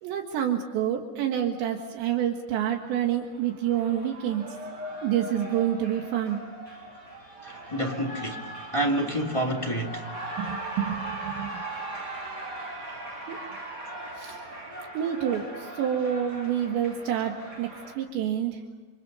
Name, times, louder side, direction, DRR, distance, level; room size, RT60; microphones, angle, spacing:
voice 1, 0.0-4.4 5.0-6.4 10.4-11.5 13.3-13.4 14.2-14.4 14.9-18.6, right 10 dB, 80° right, 3.8 m, -28 dB
Cheering, 2.8-18.0, right 2 dB, 20° right, 5.6 m, -39 dB
voice 2, 7.4-10.1, right 1 dB, 10° left, 1.8 m, -29 dB
28.5 x 26.5 x 5.5 m
omnidirectional pair, 5.1 m